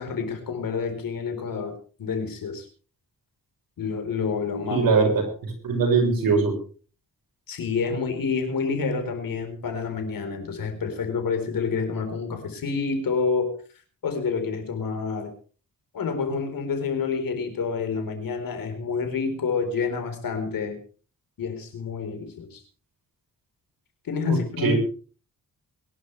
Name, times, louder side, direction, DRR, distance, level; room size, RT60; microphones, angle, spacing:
voice 1, 0.0-2.7 3.8-4.9 7.5-13.6 14.0-15.3 15.9-20.8 21.4-22.6 24.0-24.7, left 5 dB, 75° left, 6 dB, 4.3 m, -28 dB
voice 2, 4.7-6.5 24.2-24.7, right 4 dB, 85° right, 2 dB, 6.2 m, -22 dB
23.0 x 11.5 x 3.3 m, 0.38 s
cardioid pair, 105°, 35 cm